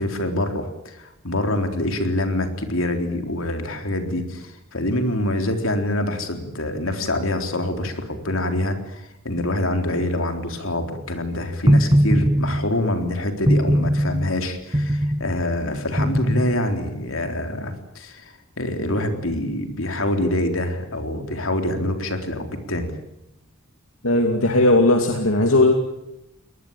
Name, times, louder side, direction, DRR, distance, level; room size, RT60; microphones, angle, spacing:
voice 1, 0.0-22.9, left 1 dB, 70° left, 5 dB, 3.9 m, -25 dB
sound 1, 11.7-12.7 13.5-14.3 14.7-15.4 16.0-16.6, equal, 20° right, 1.0 m, -19 dB
voice 2, 24.0-25.7, left 2 dB, 85° left, 4 dB, 2.5 m, -17 dB
23.5 x 20.0 x 9.0 m, 0.87 s
head